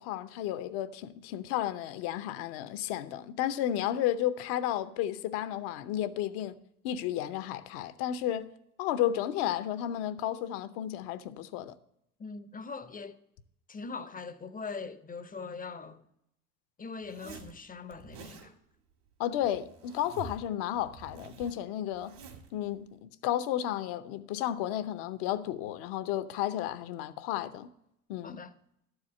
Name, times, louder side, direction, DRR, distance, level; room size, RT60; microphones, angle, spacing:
voice 1, 0.0-6.5 6.8-8.5 8.8-11.7 19.2-22.1 22.5-27.7 28.1-28.4, left 11 dB, 60° left, 0.8 m, -32 dB
voice 2, 12.2-13.2 13.7-16.1 16.8-18.6 28.2-28.5, left 4 dB, 20° left, 0.6 m, -41 dB
Zipper (clothing), 17.0-17.5 17.9-18.5 19.3-20.5 20.7-22.5, right 5 dB, 70° right, 2.2 m, -48 dB
12.5 x 4.8 x 7.3 m
hypercardioid pair, 70°, 44 cm